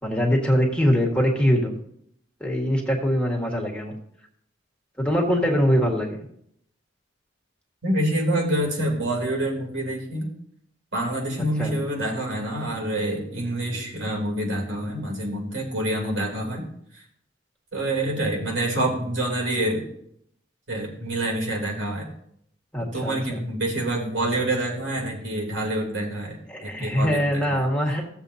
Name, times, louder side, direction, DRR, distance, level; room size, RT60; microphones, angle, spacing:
voice 1, 0.0-1.7 2.4-3.9 5.0-6.2 11.6-11.7 22.7-23.4 26.5-28.0, equal, 5° left, -1 dB, 1.6 m, -22 dB
voice 2, 7.8-10.3 10.9-16.7 16.9-17.0 17.7-19.8 20.7-22.1 22.8-27.4, right 1 dB, 80° right, -1 dB, 3.1 m, -27 dB
16.0 x 7.5 x 2.8 m, 0.70 s
head